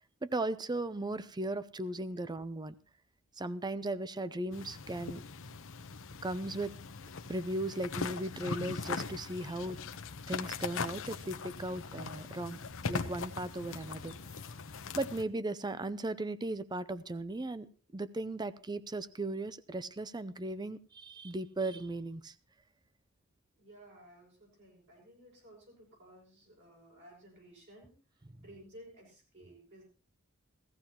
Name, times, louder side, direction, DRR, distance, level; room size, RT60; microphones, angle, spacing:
voice 1, 0.2-2.8 3.4-5.2 6.2-6.7 7.3-9.8 10.3-12.6 12.9-14.1 14.9-22.3, right 2 dB, 20° right, 15 dB, 0.6 m, -37 dB
sound 1, 4.5-15.2, left 4 dB, 65° left, 0.9 m, -41 dB
voice 2, 23.6-29.8, right 1 dB, 60° right, -3 dB, 6.5 m, -56 dB
17.0 x 15.0 x 3.0 m, 0.35 s
head